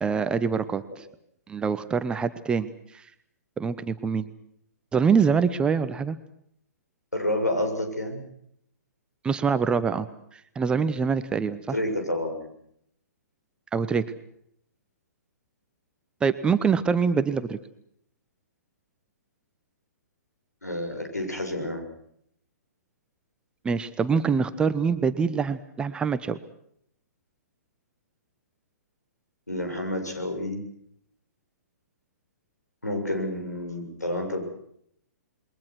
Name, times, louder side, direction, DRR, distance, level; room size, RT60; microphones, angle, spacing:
voice 1, 0.0-1.1 1.5-3.1 3.6-4.3 4.9-6.2 9.2-10.1 10.3-11.8 13.7-14.0 16.2-17.6 23.6-26.4, right 6 dB, 10° right, 12 dB, 0.9 m, -25 dB
voice 2, 7.1-8.2 11.7-12.5 20.6-21.8 29.5-30.6 32.8-34.5, left 1 dB, 80° left, 5 dB, 7.1 m, -29 dB
28.0 x 22.0 x 6.3 m, 0.71 s
figure-of-eight pair, 120°, 9 cm